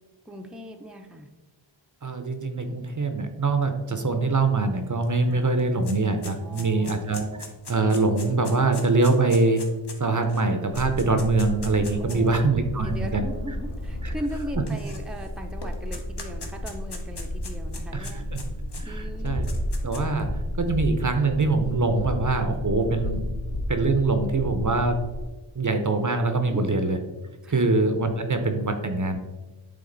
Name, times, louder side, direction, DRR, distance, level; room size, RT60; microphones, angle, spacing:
voice 1, 0.3-1.3 5.3-5.4 6.4-7.1 12.0-12.4 12.8-18.3 18.8-19.4 20.0-20.2 26.4-26.8 27.4-27.7, equal, ahead, 3 dB, 0.6 m, -38 dB
voice 2, 2.0-9.6 10.0-13.2 14.0-14.1 17.9-18.4 18.8-19.4 19.8-20.3 20.6-23.2 23.7-25.0 25.6-27.0 27.5-29.2, right 3 dB, 40° right, 7 dB, 0.6 m, -24 dB
sound 1, 5.0-5.1 5.4-12.3 13.1-13.2 14.3-15.3 15.6-18.8 19.3-20.2, left 3 dB, 55° left, 1.0 m, -41 dB
sound 2, 10.7-25.3, left 1 dB, 90° left, 1.1 m, -32 dB
8.6 x 3.5 x 3.8 m, 1.2 s
wide cardioid pair, 70°, 47 cm